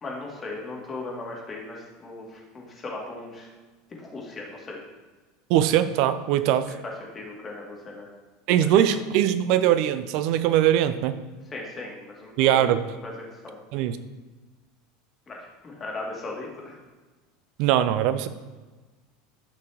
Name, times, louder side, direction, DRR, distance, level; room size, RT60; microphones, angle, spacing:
voice 1, 0.0-3.5 4.0-4.8 6.7-6.8 7.1-8.1 8.7-9.0 11.5-12.7 13.0-13.1 13.4-13.6 15.3-16.8, left 2 dB, 25° left, -2 dB, 2.6 m, -37 dB
voice 2, 5.5-6.7 8.5-11.1 12.4-12.8 13.7-14.0 17.6-18.3, right 11 dB, 55° right, 12 dB, 0.6 m, -21 dB
12.5 x 6.1 x 3.0 m, 1.3 s
hypercardioid pair, 80°, 0 cm